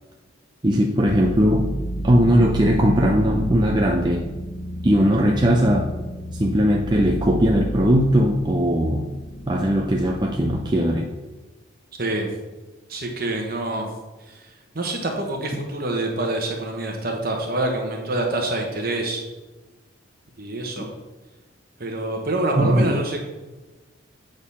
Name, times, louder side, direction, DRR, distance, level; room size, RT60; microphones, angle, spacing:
voice 1, 0.6-1.7 2.0-4.3 4.8-5.9 6.3-9.1 9.5-11.1 20.8-20.9 22.6-23.0, equal, 20° right, 0 dB, 0.5 m, -19 dB
sound 1, 1.1-10.7, right 1 dB, 60° left, 0.8 m, -31 dB
voice 2, 12.0-12.3 12.9-13.9 14.3-19.2 20.4-20.9 21.8-23.2, right 2 dB, 45° right, 1 dB, 1.0 m, -26 dB
8.5 x 3.8 x 5.5 m, 1.2 s
head